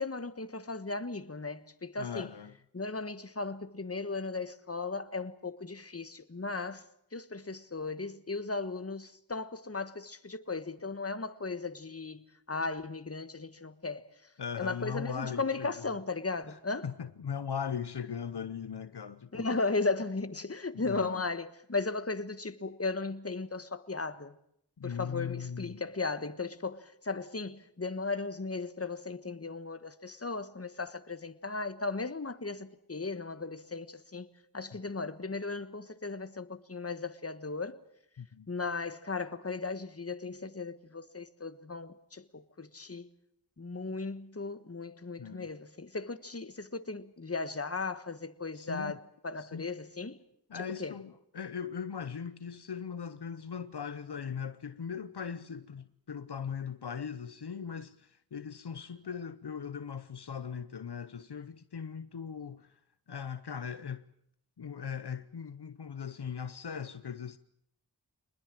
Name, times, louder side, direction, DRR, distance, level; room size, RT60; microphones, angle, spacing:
voice 1, 0.0-2.3 2.7-6.8 7.1-14.3 14.6-16.9 19.3-24.4 24.8-34.3 34.5-37.8 38.5-43.1 43.6-50.2 50.8-50.9, left 3 dB, 35° left, 1.4 m, -36 dB
voice 2, 2.0-2.6 14.4-16.0 16.5-16.6 16.8-19.5 20.7-21.2 24.8-25.8 38.2-38.5 45.2-45.5 48.5-49.0 49.4-49.7 50.5-62.8 63.1-64.0 64.6-67.4, left 7 dB, 70° left, 0.8 m, -39 dB
25.0 x 20.5 x 7.6 m
wide cardioid pair, 45°, 41 cm